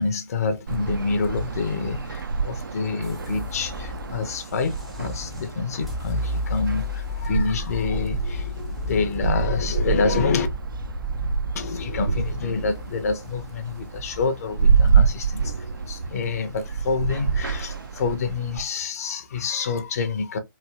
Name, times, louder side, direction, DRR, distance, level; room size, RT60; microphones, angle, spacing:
voice 1, 0.0-10.5 11.5-20.4, left 4 dB, 45° left, 0.6 m, -27 dB
sound 1, 0.7-18.6, right 6 dB, 70° right, 0.4 m, -27 dB
sound 2, 3.0-17.2, left 3 dB, ahead, 0.5 m, -34 dB
3.1 x 2.6 x 2.4 m
figure-of-eight pair, 135°, 12 cm